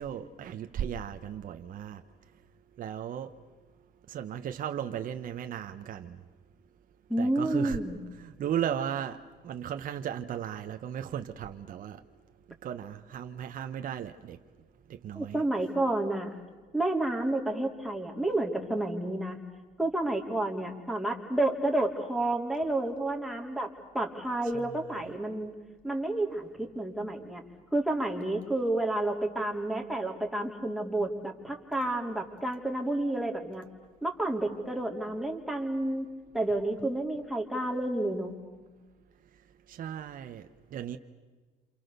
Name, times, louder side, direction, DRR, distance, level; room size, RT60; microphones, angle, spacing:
voice 1, 0.0-2.0 2.8-3.3 4.1-6.2 7.2-7.8 8.1-12.0 12.6-14.4 14.9-15.4 24.5-24.8 39.7-41.0, right 9 dB, 55° right, 1.2 m, -36 dB
voice 2, 7.1-8.0 15.1-16.4 16.7-19.4 19.8-23.7 23.9-25.5 25.8-27.4 27.7-33.6 34.0-36.1 36.3-38.3, right 1 dB, ahead, 3.8 m, -30 dB
28.0 x 28.0 x 6.9 m
cardioid pair, 110°, 17 cm